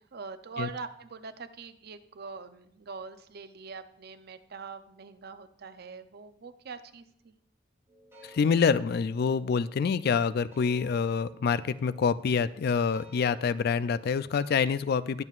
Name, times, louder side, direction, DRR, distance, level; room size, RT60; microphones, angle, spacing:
voice 1, 0.0-7.3, right 5 dB, 55° right, 10 dB, 0.6 m, -43 dB
sound 1, 7.9-14.4, right 1 dB, 15° right, 2.9 m, -54 dB
voice 2, 8.2-15.2, left 6 dB, 55° left, 15 dB, 0.3 m, -26 dB
20.5 x 7.5 x 2.5 m, 0.72 s
head